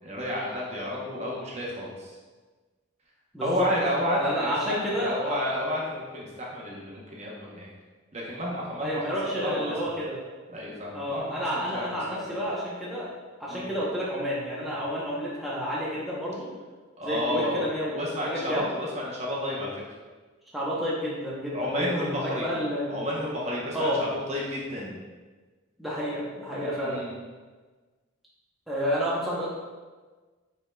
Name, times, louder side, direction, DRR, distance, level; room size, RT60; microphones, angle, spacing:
voice 1, 0.0-2.2 3.4-7.7 8.1-9.7 10.5-11.9 12.2-12.4 13.5-13.7 17.0-17.7 17.9-19.8 21.5-22.6 22.9-25.0 26.6-27.1, left 1 dB, 30° right, -4 dB, 0.8 m, -31 dB
voice 2, 3.3-3.7 4.1-5.3 8.8-10.2 10.9-13.1 13.4-16.5 17.0-18.0 18.3-18.7 20.5-23.0 23.7-24.0 25.8-27.0 28.7-29.5, equal, ahead, -8 dB, 0.7 m, -30 dB
5.1 x 4.5 x 2.2 m, 1.3 s
head